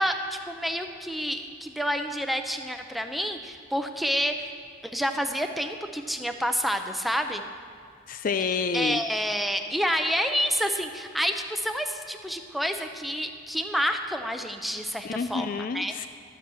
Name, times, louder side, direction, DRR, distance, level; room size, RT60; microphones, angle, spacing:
voice 1, 0.0-4.5 4.8-7.4 8.7-15.9, equal, ahead, 5 dB, 0.6 m, -28 dB
voice 2, 8.1-9.0 15.0-16.1, left 5 dB, 45° left, 11 dB, 0.3 m, -28 dB
12.5 x 8.2 x 7.6 m, 2.3 s
head